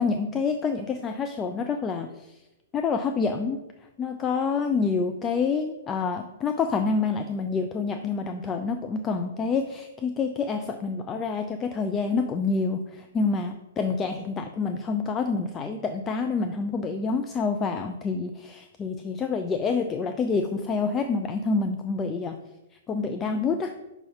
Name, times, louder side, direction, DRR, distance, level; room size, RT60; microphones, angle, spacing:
voice 1, 0.0-2.1 2.7-3.6 4.0-22.4 22.9-23.7, left 4 dB, 20° left, 7 dB, 0.3 m, -27 dB
5.7 x 3.8 x 5.7 m, 1.0 s
figure-of-eight pair, 110°, 0 cm